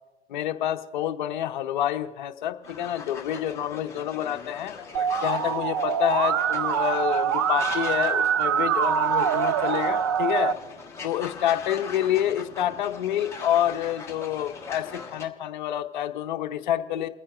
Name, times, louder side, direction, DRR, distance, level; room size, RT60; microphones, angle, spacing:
voice 1, 0.3-4.7 5.2-10.6 11.0-17.1, left 11 dB, 40° left, 9 dB, 0.9 m, -28 dB
sound 1, 2.6-15.2, left 5 dB, 10° left, 1.3 m, -40 dB
Musical instrument, 4.9-10.5, right 8 dB, 25° right, 0.3 m, -24 dB
29.5 x 9.9 x 2.5 m, 1.2 s
figure-of-eight pair, 115°, 35 cm